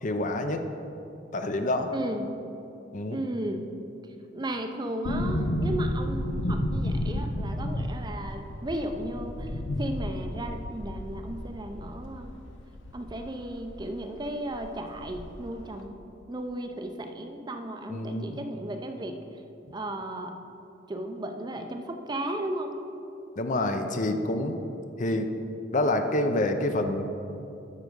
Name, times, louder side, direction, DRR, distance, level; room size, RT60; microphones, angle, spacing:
voice 1, 0.0-0.6 1.3-1.9 2.9-3.2 17.9-18.4 23.4-24.6 25.0-25.3 25.7-27.0, left 1 dB, 40° left, 7 dB, 0.6 m, -27 dB
voice 2, 1.9-2.3 3.1-3.7 4.3-9.5 9.8-12.3 12.9-16.0 16.3-19.2 19.7-20.3 20.9-22.7, right 1 dB, 20° right, 5 dB, 0.5 m, -35 dB
sound 1, 5.0-13.9 14.1-14.2 14.5-15.5 15.8-15.9, left 1 dB, 85° left, 0.8 m, -32 dB
12.5 x 4.7 x 5.3 m, 2.8 s
head